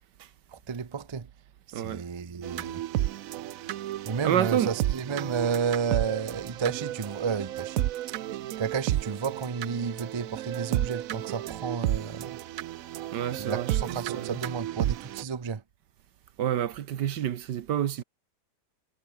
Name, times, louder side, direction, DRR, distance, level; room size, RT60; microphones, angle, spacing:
voice 1, 0.5-1.3 1.7-2.8 4.1-7.9 8.6-12.4 13.4-15.6, right 6 dB, 50° right, 0.3 m, -32 dB
voice 2, 1.7-2.0 4.2-4.7 13.1-13.7 14.1-14.4 16.4-18.0, right 10 dB, 85° right, 1.7 m, -28 dB
sound 1, 2.4-15.2, right 13 dB, 65° right, 0.9 m, -32 dB
omnidirectional pair, 1.8 m